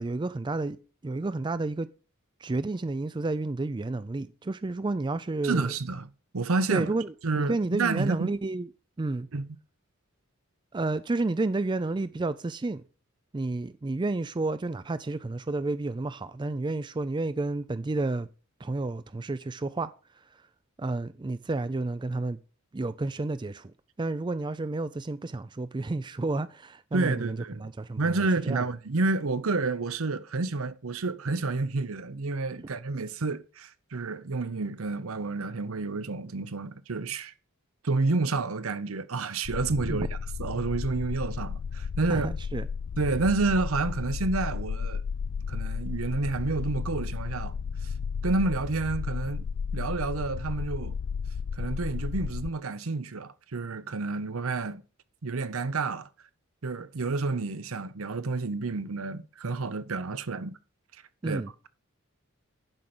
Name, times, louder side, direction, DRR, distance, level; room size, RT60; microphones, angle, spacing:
voice 1, 0.0-1.9 2.4-5.7 6.7-8.7 9.0-9.3 10.7-12.8 13.3-18.3 18.6-19.9 20.3-20.4 20.8-22.4 22.7-28.6 39.9-40.1 42.1-42.7 61.2-61.5, right 2 dB, 20° right, 0.4 m, -31 dB
voice 2, 5.4-6.1 6.3-6.9 7.2-8.3 9.3-9.5 26.9-27.7 28.0-37.3 37.8-40.1 40.4-42.3 43.0-45.0 45.5-47.5 47.8-47.9 48.2-49.5 49.7-51.0 51.5-54.8 55.2-56.1 56.6-60.6 61.2-61.7, right 3 dB, 75° right, 0.8 m, -29 dB
sound 1, 39.4-52.5, left 6 dB, 65° left, 0.4 m, -33 dB
11.0 x 5.0 x 6.0 m
head